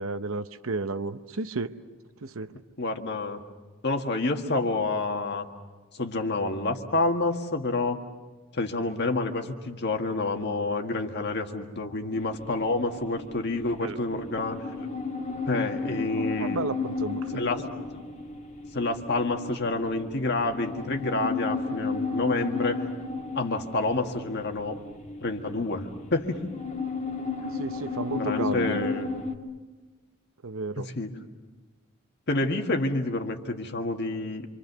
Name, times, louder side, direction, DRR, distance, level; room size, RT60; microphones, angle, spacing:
voice 1, 0.0-1.8 2.2-2.6 13.8-14.0 16.1-17.4 27.5-28.9 30.4-30.9, right 3 dB, 70° right, 11 dB, 0.9 m, -33 dB
voice 2, 2.8-3.4 3.8-5.4 5.9-8.0 8.5-14.9 15.4-16.6 17.3-17.9 18.7-22.9 23.3-24.8 25.2-26.4 28.1-29.1 30.9-31.1 32.3-34.5, left 2 dB, 55° left, 5 dB, 1.8 m, -28 dB
sound 1, 12.1-29.4, left 4 dB, 35° left, 1.8 m, -34 dB
27.0 x 26.0 x 6.8 m, 1.3 s
head